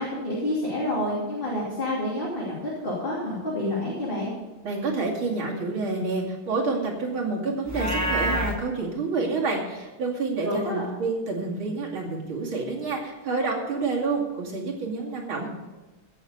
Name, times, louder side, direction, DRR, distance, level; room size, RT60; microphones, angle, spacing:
voice 1, 0.0-4.3 10.4-10.8, left 1 dB, 25° left, -6 dB, 3.0 m, -28 dB
voice 2, 4.6-15.5, right 3 dB, 75° right, -2 dB, 3.3 m, -28 dB
Livestock farm animals working animals, 7.7-8.6, equal, 10° right, 1.4 m, -26 dB
16.0 x 7.3 x 6.7 m, 1.1 s
omnidirectional pair, 2.2 m